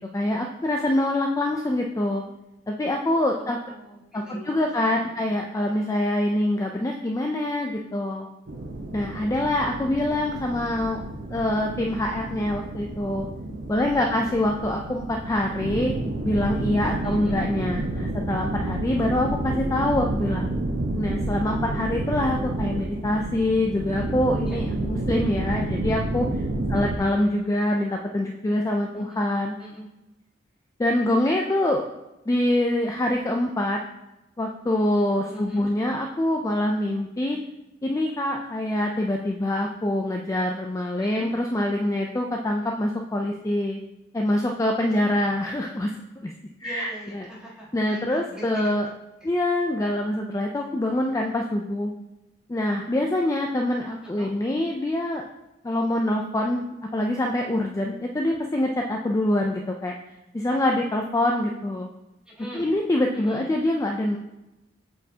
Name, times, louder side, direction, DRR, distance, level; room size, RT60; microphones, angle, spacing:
voice 1, 0.0-2.2 2.7-3.6 4.1-8.3 8.9-11.0 11.3-13.3 13.7-15.9 16.2-20.5 21.0-26.3 26.7-29.6 30.8-31.9 32.3-33.8 34.4-37.4 37.8-43.8 44.1-46.3 46.6-47.3 47.7-48.9 49.2-51.9 52.5-55.2 55.6-59.9 60.3-61.9 62.5-64.2, left 1 dB, 15° left, 1 dB, 0.4 m, -25 dB
voice 2, 3.4-5.4 13.8-14.2 17.0-17.4 24.5-24.6 26.7-27.2 28.9-29.2 29.6-29.9 35.3-35.7 41.0-41.3 45.0-45.2 46.6-48.7 49.2-49.3 54.0-54.3 62.2-62.7 63.1-63.5, equal, 5° right, -6 dB, 1.6 m, -43 dB
sound 1, 8.5-27.0, right 1 dB, 70° right, 0.8 m, -30 dB
8.0 x 4.5 x 2.8 m, 0.98 s
head